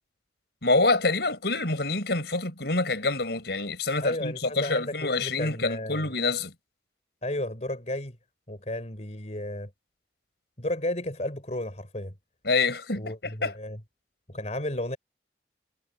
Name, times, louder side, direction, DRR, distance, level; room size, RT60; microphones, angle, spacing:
voice 1, 0.6-6.5 12.4-13.5, left 3 dB, 70° left, 5.0 m, -26 dB
voice 2, 4.0-6.1 7.2-8.2 8.5-9.7 10.6-12.1 13.0-13.8 14.3-15.0, left 1 dB, 40° left, 4.1 m, -33 dB
head